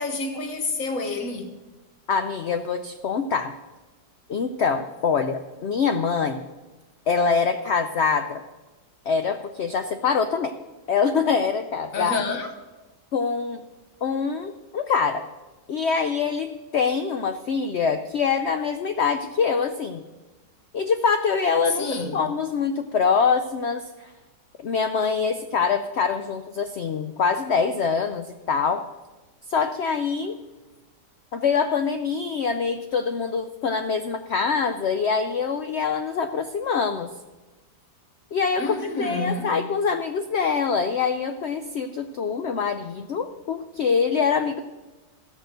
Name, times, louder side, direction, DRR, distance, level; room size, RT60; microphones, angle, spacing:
voice 1, 0.0-1.5 11.9-12.5 21.8-22.3 38.6-39.5, left 3 dB, 55° left, 1.6 m, -29 dB
voice 2, 2.1-3.5 4.3-6.4 7.1-8.4 9.1-10.5 10.9-12.2 13.1-13.6 14.0-15.3 15.7-20.0 20.7-24.1 24.6-28.8 29.5-30.4 31.3-37.1 38.3-44.6, left 5 dB, 75° left, 0.6 m, -24 dB
14.5 x 6.7 x 6.6 m
omnidirectional pair, 1.8 m